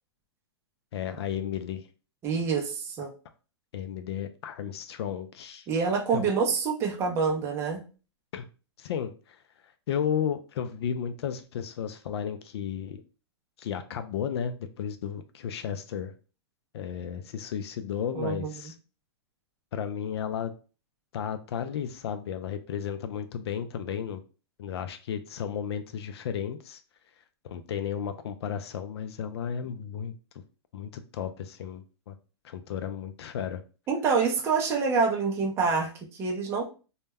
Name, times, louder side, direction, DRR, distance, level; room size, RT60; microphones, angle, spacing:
voice 1, 0.9-1.8 3.7-5.7 6.1-6.3 8.3-8.5 8.8-9.4 9.9-13.0 13.6-16.1 16.7-18.7 19.7-20.5 21.1-24.2 24.6-26.8 27.4-30.4 30.7-32.2 32.4-33.6, left 8 dB, 65° left, 9 dB, 0.4 m, -33 dB
voice 2, 2.2-3.1 5.7-7.8 18.2-18.5 33.9-36.6, right 5 dB, 15° right, 1 dB, 0.4 m, -26 dB
2.2 x 2.0 x 3.4 m, 0.35 s
hypercardioid pair, 150°, 14 cm